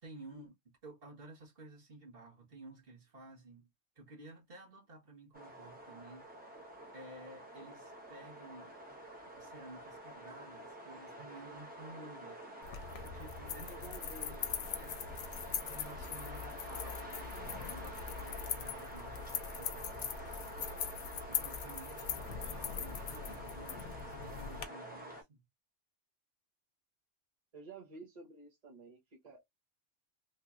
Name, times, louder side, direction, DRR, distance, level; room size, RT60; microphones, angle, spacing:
voice 1, 0.0-0.5 0.8-3.7 3.9-6.3 6.9-8.7 9.2-12.4 13.1-13.9 14.2-14.4 14.6-15.0 15.7-20.6 21.1-25.4, right 2 dB, 55° right, 1.5 m, -53 dB
sound 1, 5.3-25.2, right 1 dB, 10° right, 0.9 m, -48 dB
sound 2, 12.6-24.7, left 8 dB, 80° left, 0.9 m, -41 dB
voice 2, 13.4-14.5 27.5-29.4, right 3 dB, 35° right, 1.0 m, -52 dB
3.2 x 2.7 x 2.3 m
omnidirectional pair, 1.2 m